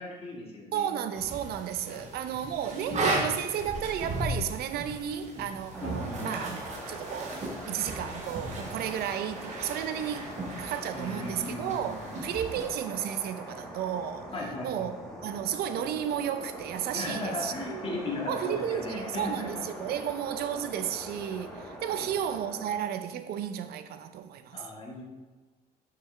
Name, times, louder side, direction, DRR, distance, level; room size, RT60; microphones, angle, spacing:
voice 1, 0.0-1.0 1.9-2.0 2.5-3.3 5.8-6.4 10.9-12.2 14.3-14.9 16.9-19.6 19.9-20.0 21.9-22.1 24.5-25.0, left 2 dB, 35° left, -3 dB, 2.0 m, -37 dB
voice 2, 0.7-14.3 14.6-14.9 15.2-17.9 18.3-24.7, right 9 dB, 70° right, 10 dB, 0.6 m, -33 dB
sound 1, 1.1-12.7, right 2 dB, 40° right, 1.4 m, -36 dB
sound 2, 5.7-22.8, equal, 5° left, 1.8 m, -43 dB
6.7 x 6.6 x 3.3 m, 1.3 s
cardioid pair, 110°, 17 cm